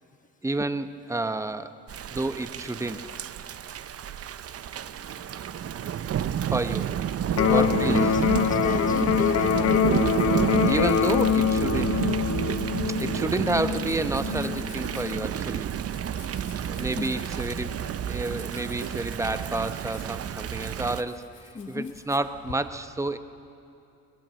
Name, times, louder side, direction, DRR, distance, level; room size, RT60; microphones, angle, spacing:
voice 1, 0.4-1.8 2.1-3.1 6.5-7.0 7.5-8.0 10.5-12.0 12.9-15.7 16.7-23.2, right 2 dB, 10° right, 10 dB, 0.9 m, -30 dB
Thunder / Rain, 1.9-21.0, right 9 dB, 50° right, 0.7 m, -30 dB
Electric guitar, 7.3-15.3, left 9 dB, 55° left, 0.7 m, -25 dB
voice 2, 7.3-9.9 17.0-17.1 17.4-17.6 21.5-21.9, left 4 dB, 25° left, 9 dB, 1.2 m, -32 dB
Domestic sounds home sounds, 12.4-22.5, left 8 dB, 85° left, 1.9 m, -51 dB
21.5 x 20.0 x 7.6 m, 2.7 s
cardioid pair, 90°, 30 cm